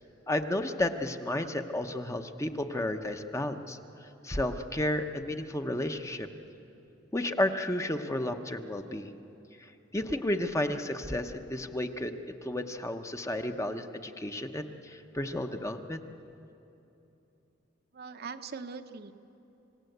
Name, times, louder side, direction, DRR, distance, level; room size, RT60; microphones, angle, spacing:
voice 1, 0.3-6.3 7.1-9.1 9.6-16.0, left 1 dB, 15° left, 6 dB, 0.8 m, -32 dB
voice 2, 17.9-19.1, right 5 dB, 55° right, 7 dB, 0.8 m, -41 dB
29.0 x 17.0 x 7.9 m, 2.9 s
head